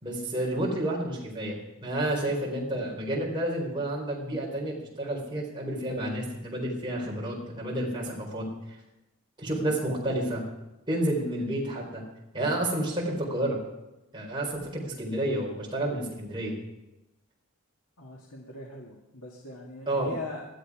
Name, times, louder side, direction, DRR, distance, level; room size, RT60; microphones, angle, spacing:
voice 1, 0.0-8.5 9.4-10.4 10.9-12.0 12.3-13.6 14.1-16.6 19.9-20.1, right 1 dB, 20° right, -2 dB, 4.2 m, -30 dB
voice 2, 18.0-20.5, left 2 dB, 80° left, -2 dB, 2.1 m, -41 dB
19.5 x 12.5 x 4.9 m, 0.98 s
head